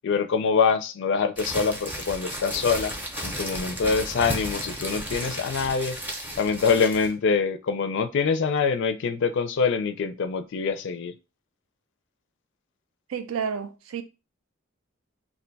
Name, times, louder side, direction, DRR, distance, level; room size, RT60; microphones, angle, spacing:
voice 1, 0.0-2.9 3.2-6.0 6.4-11.1, left 5 dB, 60° left, 0.4 m, -25 dB
sound 1, 1.4-7.1, equal, 10° right, 0.6 m, -34 dB
voice 2, 13.1-14.0, right 6 dB, 75° right, 0.4 m, -30 dB
2.5 x 2.2 x 3.9 m
head